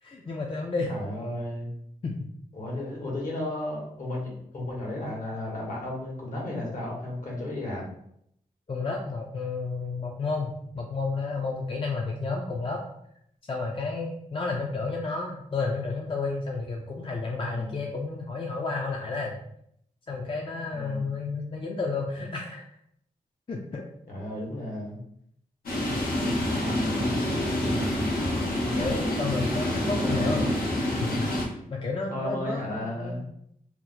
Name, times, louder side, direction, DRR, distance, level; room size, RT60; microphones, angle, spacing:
voice 1, 0.0-0.9 2.0-2.2 8.7-12.8 13.5-19.3 20.1-22.6 23.5-23.9 28.8-31.3 31.7-33.2, left 3 dB, 35° left, 0 dB, 0.5 m, -31 dB
voice 2, 0.9-1.7 2.5-7.9 17.4-17.8 20.7-21.0 24.1-25.0 26.5-27.1 32.1-33.3, left 1 dB, 65° left, -3 dB, 1.4 m, -34 dB
sound 1, 25.7-31.5, left 1 dB, 90° left, 1.0 m, -27 dB
2.9 x 2.1 x 3.9 m, 0.72 s
cardioid pair, 55°, 15 cm